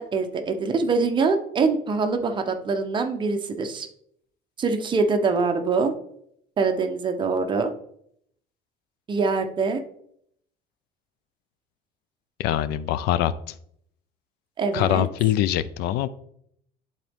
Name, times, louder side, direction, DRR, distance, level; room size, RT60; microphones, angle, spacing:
voice 1, 0.0-3.9 4.6-5.9 6.6-7.7 9.1-9.8 14.6-15.1, right 4 dB, 30° right, 5 dB, 0.8 m, -24 dB
voice 2, 12.4-13.5 14.7-16.1, left 12 dB, 75° left, 15 dB, 0.5 m, -23 dB
11.5 x 4.0 x 3.6 m, 0.70 s
cardioid pair, 150°, 17 cm